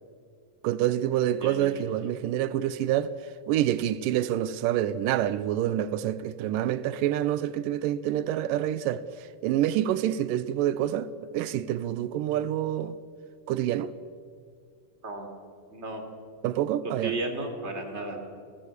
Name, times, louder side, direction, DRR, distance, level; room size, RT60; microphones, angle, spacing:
voice 1, 0.6-3.1 3.5-11.1 11.3-13.0 13.5-13.9 16.4-17.1, right 12 dB, 90° right, 2.4 m, -27 dB
voice 2, 1.4-2.0 15.0-15.3 15.7-16.0 17.0-18.3, right 2 dB, 20° right, 3.4 m, -34 dB
28.5 x 18.5 x 8.2 m
omnidirectional pair, 3.8 m